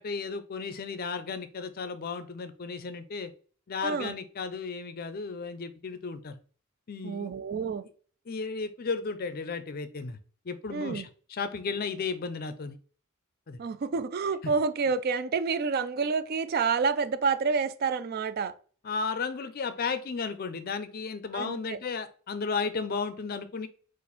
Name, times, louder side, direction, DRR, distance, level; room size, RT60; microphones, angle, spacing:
voice 1, 0.0-3.3 3.7-6.4 6.9-7.3 8.3-10.2 10.5-12.8 13.5-13.6 18.8-23.7, left 5 dB, 45° left, 0.4 m, -34 dB
voice 2, 3.8-4.1 7.0-7.8 10.7-11.1 13.6-18.5 21.3-21.8, right 5 dB, 45° right, 0.3 m, -28 dB
4.0 x 2.5 x 4.2 m
head